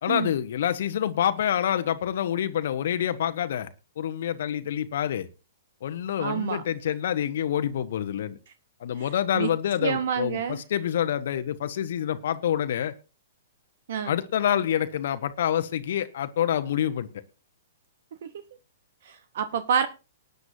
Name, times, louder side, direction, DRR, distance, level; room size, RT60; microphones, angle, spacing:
voice 1, 0.0-3.7 4.0-5.3 5.8-8.4 8.8-12.9 14.0-17.1, left 10 dB, 55° left, 1.0 m, -27 dB
voice 2, 6.2-6.6 9.0-9.1 9.3-9.5 9.8-10.6 13.9-14.1 19.0-19.9, right 7 dB, 55° right, 1.0 m, -28 dB
19.5 x 9.5 x 2.7 m
figure-of-eight pair, 110°, 0 cm